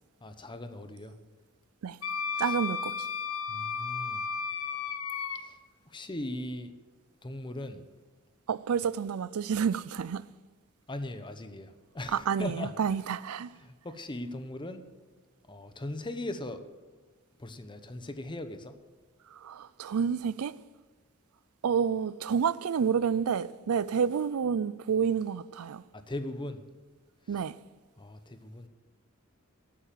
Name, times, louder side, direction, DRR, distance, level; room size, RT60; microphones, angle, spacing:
voice 1, 0.2-1.1 2.4-2.6 3.5-4.3 5.4-5.6 5.9-6.7 7.2-7.8 10.9-12.7 13.5-14.8 15.5-16.6 17.4-18.8 25.9-26.6 27.3-27.4 28.0-28.7, left 1 dB, 20° left, 0.9 m, -39 dB
Wind instrument woodwind instrument, 2.0-5.4, left 5 dB, 90° left, 1.3 m, -33 dB
voice 2, 2.4-2.9 8.5-10.2 12.1-13.5 19.3-20.5 21.6-25.8 27.3-27.6, right 7 dB, 90° right, 0.4 m, -29 dB
12.0 x 8.7 x 7.6 m
head